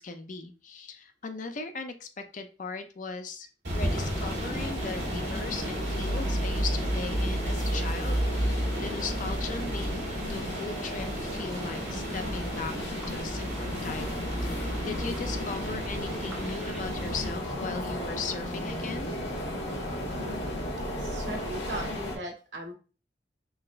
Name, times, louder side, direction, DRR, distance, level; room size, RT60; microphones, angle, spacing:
voice 1, 0.0-19.1, left 4 dB, 45° left, 8 dB, 0.5 m, -38 dB
sound 1, 3.6-17.3, right 1 dB, 70° right, 1.5 m, -33 dB
sound 2, 3.8-22.2, left 1 dB, 90° left, 1.2 m, -35 dB
sound 3, 8.2-16.8, left 1 dB, ahead, 0.8 m, -51 dB
voice 2, 21.0-22.7, right 1 dB, 90° right, 0 dB, 1.3 m, -38 dB
3.9 x 3.2 x 2.5 m, 0.35 s
head